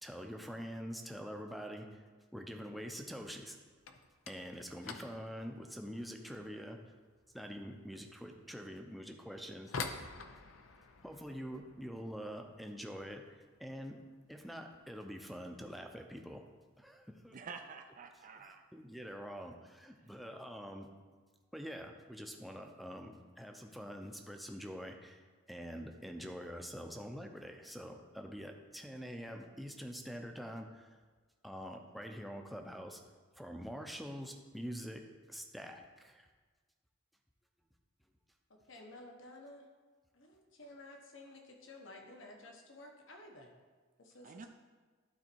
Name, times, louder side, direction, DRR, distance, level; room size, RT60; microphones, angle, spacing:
voice 1, 0.0-2.0 2.3-3.6 4.3-6.8 7.3-9.7 11.0-14.0 14.3-16.4 16.8-17.4 18.4-20.9 21.5-30.9 31.4-33.0 33.3-36.3, equal, ahead, 3 dB, 0.6 m, -45 dB
sound 1, 3.7-14.5 14.8-15.4 15.6-16.0 16.3-16.4 17.1-17.2 18.1-18.3 18.6-19.1, left 4 dB, 85° left, 0.6 m, -49 dB
voice 2, 17.3-18.6 20.0-20.2 29.1-29.3 44.2-44.5, right 5 dB, 40° right, 5 dB, 0.4 m, -49 dB
voice 3, 38.7-39.6 40.1-43.5 44.0-44.5, left 2 dB, 70° left, 2 dB, 1.2 m, -53 dB
12.0 x 4.1 x 4.5 m, 1.4 s
head